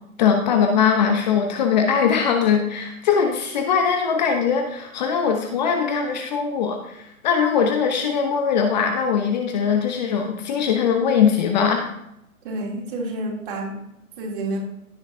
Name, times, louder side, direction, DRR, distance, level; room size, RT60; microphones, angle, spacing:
voice 1, 0.2-11.8, left 7 dB, 30° left, 4 dB, 1.0 m, -21 dB
voice 2, 12.4-13.8 14.2-14.6, right 2 dB, 35° right, -1 dB, 3.1 m, -29 dB
16.0 x 5.8 x 2.8 m, 0.82 s
figure-of-eight pair, 135°, 43 cm